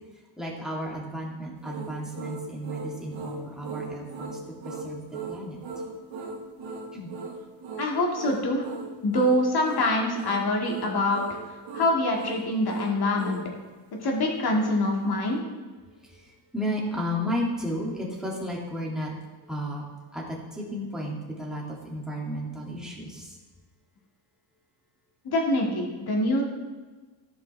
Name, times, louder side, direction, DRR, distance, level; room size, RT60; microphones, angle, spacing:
voice 1, 0.4-4.3 4.6-5.6 6.9-7.1 16.1-19.2 19.4-19.8 20.1-23.4, equal, ahead, -4 dB, 2.4 m, -33 dB
sound 1, 1.6-13.5, right 4 dB, 65° right, 1.4 m, -38 dB
voice 2, 7.8-8.6 9.0-11.3 11.7-13.4 14.0-15.4 25.2-26.4, left 1 dB, 50° left, 0 dB, 2.1 m, -25 dB
14.0 x 5.5 x 3.3 m, 1.4 s
cardioid pair, 100°, 49 cm